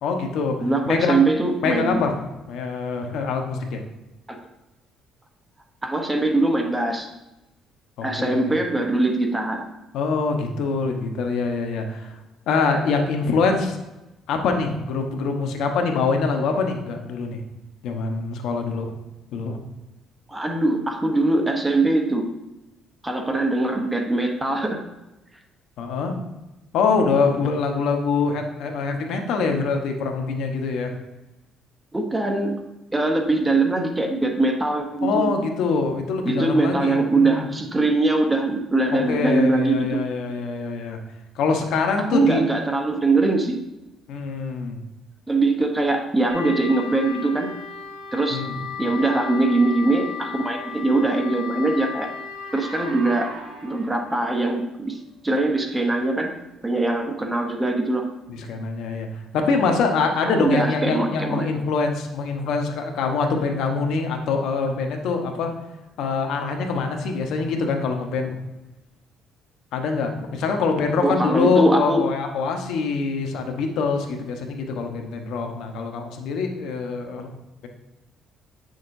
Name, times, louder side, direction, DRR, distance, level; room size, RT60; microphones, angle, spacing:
voice 1, 0.0-0.6 0.8-1.2 1.6-2.2 2.5-3.8 8.0-8.5 9.9-12.2 12.5-13.8 14.3-17.4 17.8-18.9 19.3-19.6 25.8-26.2 26.7-30.9 35.0-37.5 38.9-41.0 41.3-42.4 44.1-44.8 48.3-48.6 58.3-65.5 66.0-68.4 69.7-77.3, left 4 dB, 75° left, 4 dB, 1.0 m, -24 dB
voice 2, 0.6-2.0 4.3-4.4 5.8-7.1 8.0-9.7 20.3-22.3 23.0-24.8 31.9-32.5 32.9-35.3 36.2-40.0 42.1-43.6 45.3-47.5 48.1-48.4 48.8-52.1 52.5-53.3 53.6-55.0 55.2-56.3 56.6-58.1 60.2-61.5 71.0-72.0, right 2 dB, 10° right, 3 dB, 0.9 m, -22 dB
sound 1, 46.3-54.3, left 5 dB, 65° right, 2.3 m, -35 dB
8.5 x 6.4 x 2.6 m, 0.98 s
cardioid pair, 125°, 0 cm